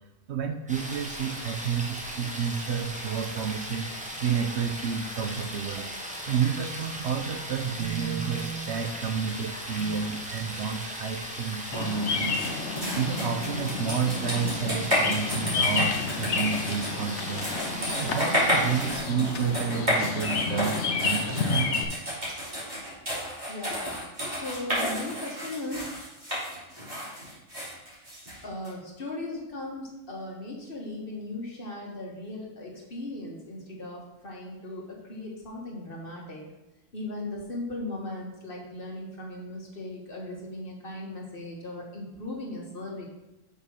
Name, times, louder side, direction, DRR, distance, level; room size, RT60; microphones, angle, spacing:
voice 1, 0.3-3.9 4.2-5.9 6.3-12.4 12.9-17.5 18.0-21.9, right 7 dB, 65° right, 7 dB, 0.9 m, -30 dB
sound 1, 0.7-19.0, equal, 5° right, 0.9 m, -38 dB
Bird vocalization bird call bird song, 11.7-21.8, left 4 dB, 60° left, 1.1 m, -30 dB
sound 2, 12.3-28.7, equal, 35° right, 3.2 m, -31 dB
voice 2, 23.5-25.9 28.4-36.4 36.9-43.1, left 2 dB, 45° left, -2 dB, 1.7 m, -38 dB
6.2 x 5.5 x 5.6 m, 0.96 s
omnidirectional pair, 1.4 m